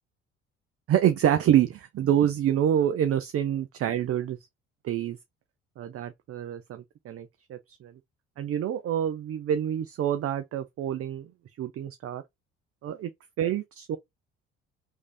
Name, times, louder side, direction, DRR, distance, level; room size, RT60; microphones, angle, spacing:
voice 1, 0.9-4.4 4.8-5.2 5.8-7.9 8.4-11.3 11.6-12.2 12.8-13.1 13.4-14.0, right 10 dB, 50° right, 0.6 m, -27 dB
3.2 x 2.6 x 3.3 m
hypercardioid pair, 55°, 31 cm